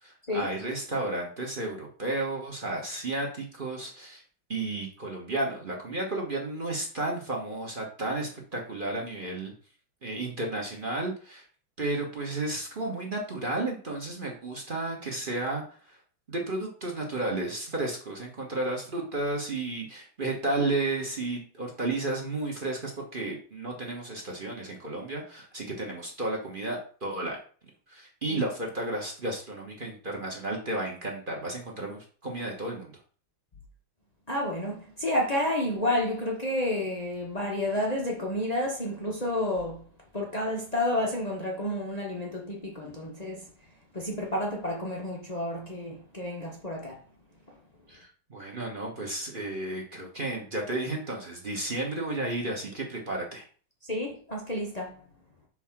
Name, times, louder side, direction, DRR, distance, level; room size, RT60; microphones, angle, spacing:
voice 1, 0.0-4.2 4.5-9.5 10.0-11.4 11.8-15.6 15.9-16.0 16.3-27.4 27.9-32.9 47.9-53.4, right 2 dB, 35° right, 0.9 m, -32 dB
voice 2, 34.3-39.8 40.1-43.4 43.9-47.0 53.8-55.0, left 1 dB, 60° left, 0.4 m, -30 dB
4.8 x 4.0 x 5.8 m
omnidirectional pair, 2.4 m